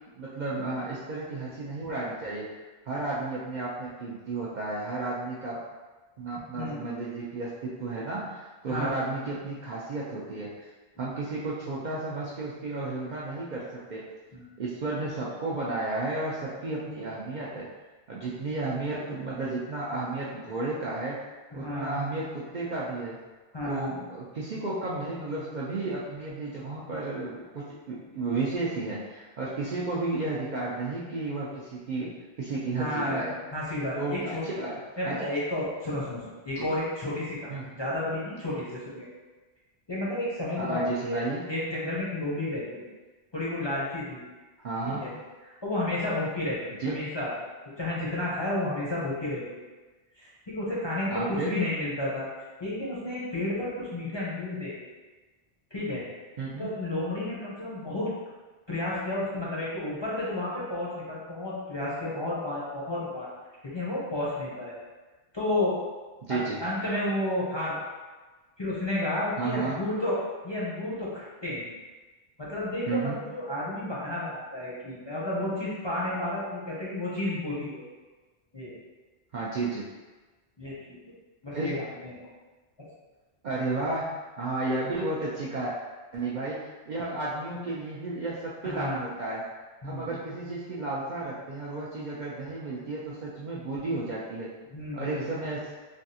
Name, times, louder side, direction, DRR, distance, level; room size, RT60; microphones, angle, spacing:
voice 1, 0.1-2.5 2.9-5.6 6.2-10.7 11.0-14.1 14.6-17.7 18.1-21.2 21.5-23.2 23.6-32.1 32.4-33.3 34.0-35.2 36.6-36.7 37.5-37.8 40.6-41.4 44.6-45.0 46.8-46.9 51.1-51.6 56.4-56.7 66.2-66.6 69.4-69.8 72.9-73.2 79.3-79.9 81.5-81.8 83.4-85.7 86.1-86.6 86.9-89.4 89.8-94.5 94.9-95.7, right 3 dB, 55° right, -6 dB, 0.5 m, -33 dB
voice 2, 8.7-9.1 14.3-14.5 21.5-22.0 23.5-24.0 26.9-27.1 32.8-33.2 33.5-34.4 35.0-37.5 37.8-39.1 39.9-41.2 41.5-42.8 43.3-44.2 44.8-45.1 45.4-46.6 46.9-47.3 47.8-49.4 50.2-52.3 52.6-54.9 55.7-56.0 56.6-58.1 58.7-63.3 63.6-64.8 65.3-65.8 66.3-67.9 68.6-71.7 72.4-77.8 78.5-78.7 80.6-81.0 81.4-82.2 82.8-82.9 88.6-89.0 89.8-90.1 94.7-95.2, left 1 dB, 30° left, -8 dB, 0.6 m, -31 dB
3.3 x 2.3 x 2.7 m, 1.3 s
omnidirectional pair, 1.1 m